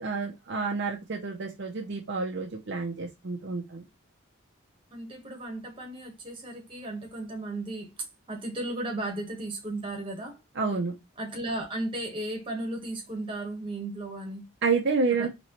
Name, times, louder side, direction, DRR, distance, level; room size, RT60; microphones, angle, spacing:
voice 1, 0.0-3.8 10.6-10.9 14.6-15.3, right 4 dB, 55° right, 0.6 m, -29 dB
voice 2, 4.9-7.9 8.3-10.4 11.2-14.4 15.1-15.3, right 1 dB, 25° right, 1.2 m, -35 dB
4.1 x 3.0 x 3.0 m
head